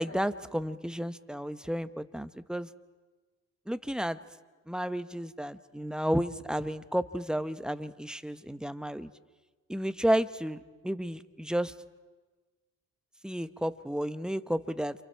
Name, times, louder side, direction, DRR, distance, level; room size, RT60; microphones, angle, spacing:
voice 1, 0.0-2.7 3.7-4.2 4.7-9.1 9.7-11.7 13.2-15.0, equal, 5° right, 12 dB, 0.9 m, -32 dB
29.0 x 27.0 x 4.6 m, 1.3 s
cardioid pair, 90°, 30 cm